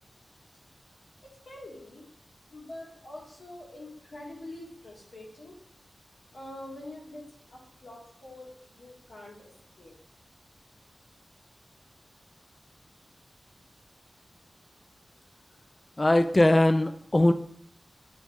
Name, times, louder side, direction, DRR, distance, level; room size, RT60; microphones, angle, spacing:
voice 1, 1.5-2.1 2.5-5.6 6.3-7.2 7.5-9.5 9.8-9.9, left 1 dB, 75° left, -3 dB, 1.8 m, -45 dB
voice 2, 16.0-17.3, left 1 dB, 30° left, 9 dB, 0.4 m, -21 dB
8.9 x 3.1 x 3.6 m, 0.64 s
wide cardioid pair, 80°, 0 cm